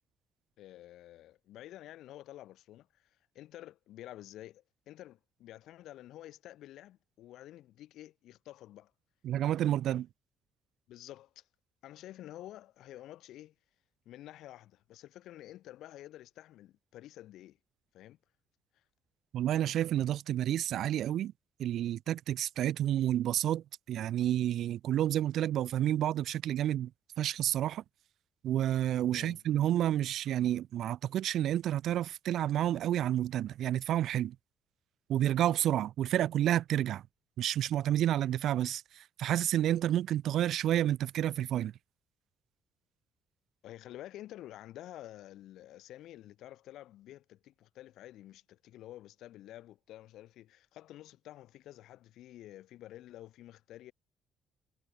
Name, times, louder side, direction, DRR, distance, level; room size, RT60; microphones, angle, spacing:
voice 1, 0.6-8.9 9.9-10.0 10.9-11.5 11.8-13.5 14.0-17.6 17.9-18.2 18.7-18.8 29.1-29.4 43.6-53.9, left 14 dB, 70° left, 6.8 m, -50 dB
voice 2, 9.2-10.0 19.3-21.3 21.6-26.9 27.2-27.8 28.4-34.4 35.1-37.0 37.4-38.8 39.2-41.7, right 12 dB, 65° right, 0.6 m, -30 dB
hypercardioid pair, 55°, 0 cm